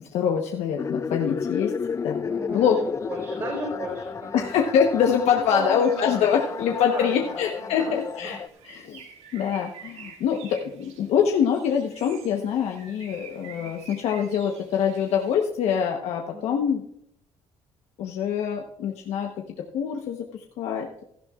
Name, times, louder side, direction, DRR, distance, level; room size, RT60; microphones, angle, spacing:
voice 1, 0.1-1.7 2.0-2.2 2.5-2.8 4.3-8.4 8.6-9.0 9.3-16.8 18.0-19.3 19.7-20.2 20.6-21.0, left 8 dB, 80° left, 2 dB, 1.0 m, -24 dB
sound 1, 0.8-8.5, left 6 dB, 25° left, 0.4 m, -32 dB
voice 2, 2.2-4.5 5.0-5.1 5.5-6.3 6.7-8.6 16.3-16.6, right 2 dB, 35° right, -5 dB, 4.1 m, -36 dB
Bird, 5.8-15.4, right 7 dB, 85° right, 2.2 m, -49 dB
17.0 x 12.0 x 2.4 m, 0.75 s
cardioid pair, 130°, 11 cm